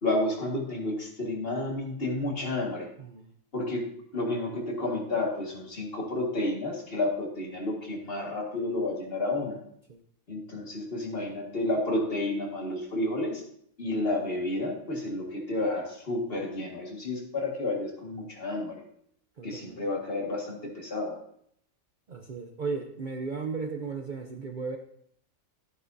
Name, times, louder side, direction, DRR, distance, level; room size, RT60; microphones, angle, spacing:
voice 1, 0.0-2.9 3.5-3.9 4.1-9.6 10.3-13.4 13.8-18.8 19.4-21.2, left 2 dB, 45° left, 0 dB, 2.1 m, -31 dB
voice 2, 3.0-3.3 9.9-10.0 19.4-19.8 22.1-24.8, right 4 dB, 45° right, 3 dB, 0.7 m, -35 dB
12.5 x 9.6 x 2.7 m, 0.68 s
omnidirectional pair, 1.4 m